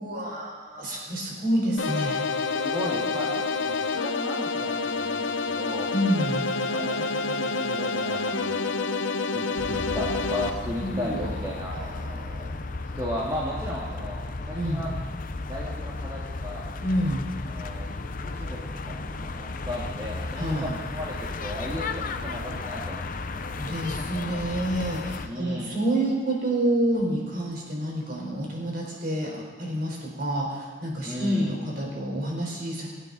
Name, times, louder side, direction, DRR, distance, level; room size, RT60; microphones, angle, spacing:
voice 1, 0.0-2.2 5.9-6.5 10.8-11.3 11.7-12.6 14.5-14.8 16.8-17.2 20.4-20.7 23.6-32.9, right 1 dB, 50° right, -2 dB, 4.2 m, -28 dB
sound 1, 1.8-10.5, left 4 dB, 80° left, 0.7 m, -28 dB
voice 2, 2.5-5.9 6.7-8.6 9.3-11.8 13.0-14.2 14.5-14.9 15.4-16.7 17.5-17.9 18.2-23.4 25.3-25.7 31.0-31.5, left 1 dB, 20° right, -6 dB, 1.9 m, -35 dB
sound 2, 9.6-25.3, left 3 dB, 45° left, 0.6 m, -34 dB
24.0 x 9.5 x 4.0 m, 1.4 s
head